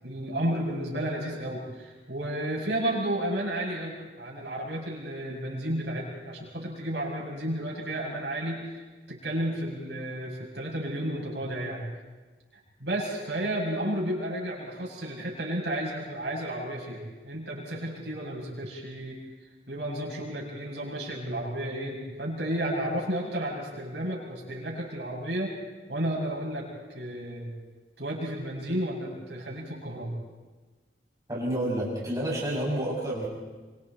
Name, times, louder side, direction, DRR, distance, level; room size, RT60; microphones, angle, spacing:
voice 1, 0.0-11.8 12.8-19.2 19.7-25.5 25.9-27.5 28.0-30.1, right 1 dB, 70° right, -3 dB, 7.5 m, -32 dB
voice 2, 31.3-33.3, right 1 dB, 20° right, -4 dB, 6.7 m, -29 dB
26.0 x 25.5 x 4.5 m, 1.3 s
head